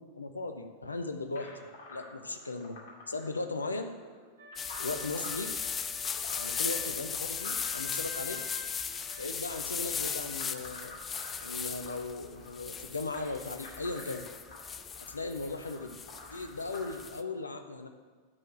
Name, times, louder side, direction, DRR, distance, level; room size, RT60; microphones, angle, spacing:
voice 1, 0.0-2.8 3.1-3.9 4.8-5.5 6.3-8.4 9.1-10.9 11.4-14.3 15.1-16.0 16.3-17.9, left 3 dB, 80° left, 7 dB, 0.8 m, -37 dB
sound 1, 1.4-16.9, left 3 dB, 60° left, 2.2 m, -49 dB
sound 2, 4.4-10.7, left 2 dB, 80° right, 2.4 m, -48 dB
sound 3, 4.6-17.2, left 6 dB, 20° left, 0.4 m, -37 dB
9.8 x 4.6 x 7.5 m, 1.5 s
figure-of-eight pair, 90°, 0 cm